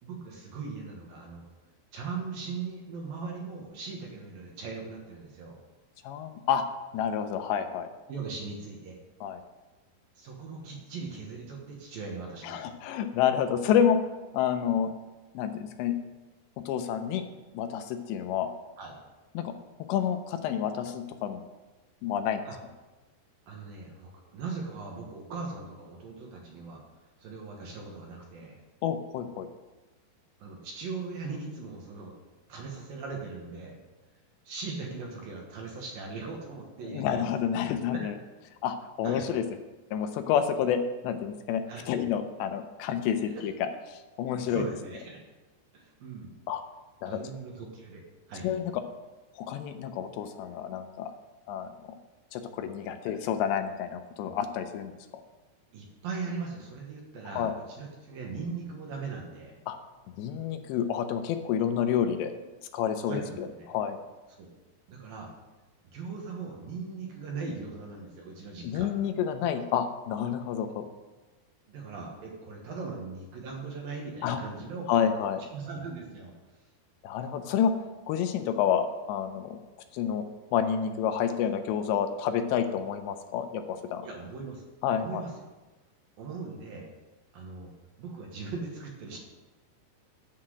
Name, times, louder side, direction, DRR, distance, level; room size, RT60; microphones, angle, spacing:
voice 1, 0.0-1.4 1.9-5.6 8.1-9.0 10.2-12.7 18.8-19.0 22.5-22.6 23.5-26.8 27.2-28.6 30.4-32.1 32.5-33.8 34.4-37.3 37.9-38.1 39.0-39.2 41.7-41.8 43.3-43.5 44.5-45.2 45.7-46.3 47.1-48.0 48.3-48.5 53.0-53.1 54.2-54.4 55.7-59.6 63.1-63.7 64.4-64.5 64.9-65.3 65.9-68.9 71.7-74.8 75.5-76.3 84.0-84.6 85.0-85.3 86.2-86.9 87.3-87.7 88.0-89.2, right 4 dB, 65° right, 0 dB, 2.7 m, -39 dB
voice 2, 6.0-6.6 6.9-7.9 9.2-9.4 12.4-14.0 14.3-14.9 15.3-16.0 16.6-17.2 17.5-18.5 19.3-19.5 19.9-21.4 22.0-22.4 28.8-29.5 36.8-38.2 38.6-39.4 39.9-44.6 46.5-46.6 47.0-47.2 48.4-48.7 49.4-51.1 51.5-52.0 52.3-55.2 57.3-57.5 59.7-59.8 60.2-62.3 62.7-64.0 68.6-70.9 74.2-74.4 74.9-75.4 77.0-77.7 78.1-79.6 79.9-80.2 80.5-84.1 84.8-85.2, left 8 dB, 80° left, 7 dB, 2.8 m, -29 dB
10.0 x 5.8 x 7.6 m, 1.2 s
omnidirectional pair, 5.2 m